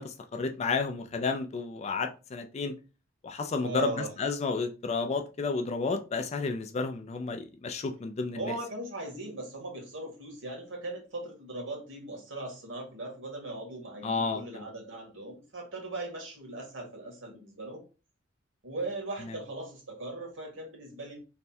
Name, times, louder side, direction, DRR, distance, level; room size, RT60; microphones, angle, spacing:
voice 1, 0.0-2.8 3.2-3.9 4.2-8.5 14.0-14.6, left 4 dB, 35° left, 0.3 m, -31 dB
voice 2, 3.6-4.1 8.3-17.8 18.6-21.2, right 2 dB, 85° right, 1.6 m, -39 dB
3.3 x 2.2 x 4.2 m
head